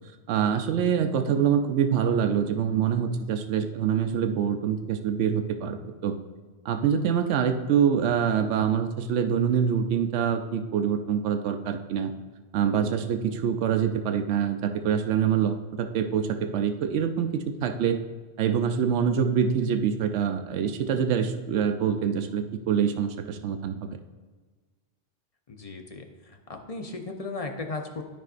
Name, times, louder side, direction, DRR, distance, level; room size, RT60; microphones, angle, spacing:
voice 1, 0.3-6.2 6.6-12.1 12.5-18.0 18.4-23.7, right 7 dB, 85° right, 7 dB, 0.9 m, -25 dB
voice 2, 25.5-26.0 26.5-28.0, left 3 dB, 35° left, 4 dB, 0.7 m, -35 dB
12.5 x 5.2 x 2.5 m, 1.4 s
omnidirectional pair, 1.2 m